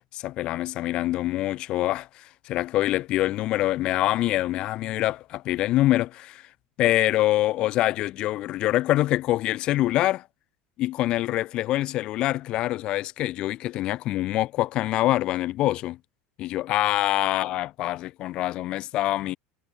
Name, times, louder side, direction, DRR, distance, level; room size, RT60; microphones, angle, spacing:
voice 1, 0.1-6.4 6.8-10.2 10.8-16.0 16.4-19.4, left 15 dB, 40° left, 0.9 m, -25 dB
supercardioid pair, 150°, 2 cm